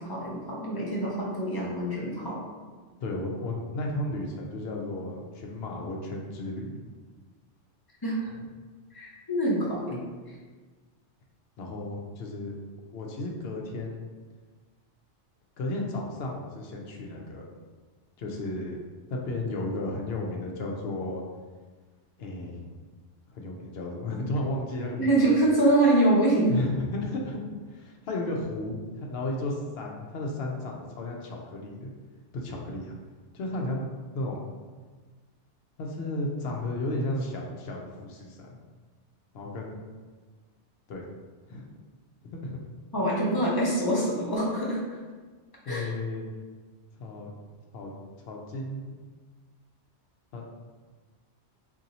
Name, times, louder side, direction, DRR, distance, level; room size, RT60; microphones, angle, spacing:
voice 1, 0.0-2.4 8.0-8.3 8.9-10.0 10.3-10.4 25.0-26.5 42.9-44.8 45.7-45.9, right 1 dB, 25° left, -5 dB, 0.6 m, -25 dB
voice 2, 3.0-6.8 11.6-12.5 12.9-14.1 15.6-17.5 18.2-18.8 19.1-21.2 22.2-22.7 23.3-25.4 26.5-27.4 27.7-31.9 32.3-32.9 33.3-33.9 34.1-34.4 35.8-38.6 39.3-39.9 40.9-41.0 41.5-41.7 42.2-42.6 45.7-46.3 47.0-47.3 47.7-47.9 48.3-48.9 50.3-50.5, left 2 dB, 65° left, 0 dB, 0.8 m, -33 dB
2.7 x 2.6 x 4.0 m, 1.4 s
omnidirectional pair, 1.2 m